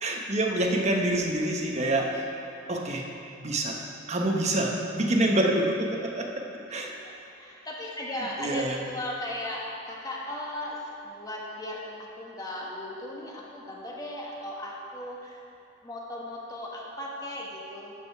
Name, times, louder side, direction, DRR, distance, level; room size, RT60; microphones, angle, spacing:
voice 1, 0.0-2.3 2.7-3.1 3.4-3.8 4.1-6.9 8.2-8.8, right 1 dB, 35° right, 0 dB, 1.0 m, -27 dB
voice 2, 6.7-10.8 11.0-15.4 15.8-17.9, left 1 dB, 20° left, -3 dB, 1.4 m, -37 dB
12.5 x 5.3 x 5.6 m, 2.8 s
head